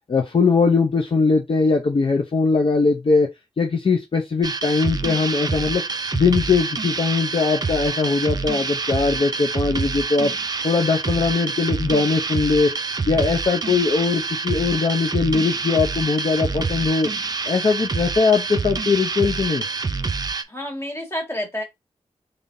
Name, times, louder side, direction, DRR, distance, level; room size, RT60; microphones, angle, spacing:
voice 1, 0.1-3.3 3.6-5.8 6.1-10.3 10.6-12.7 13.1-17.1 17.4-19.6, left 4 dB, 50° left, 0.7 m, -20 dB
sound 1, 4.4-20.4, right 4 dB, 35° right, 0.5 m, -27 dB
voice 2, 20.5-21.6, left 1 dB, 25° left, 1.6 m, -29 dB
3.7 x 3.4 x 2.6 m
wide cardioid pair, 75°, 11 cm